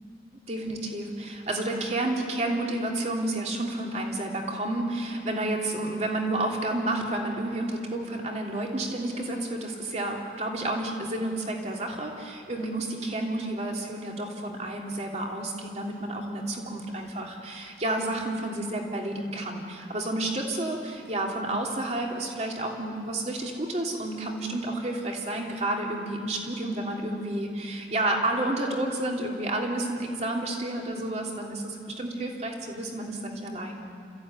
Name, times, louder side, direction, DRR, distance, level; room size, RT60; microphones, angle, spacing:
voice 1, 0.3-33.9, right 1 dB, 40° right, 0 dB, 2.9 m, -30 dB
29.5 x 15.0 x 9.3 m, 2.6 s
head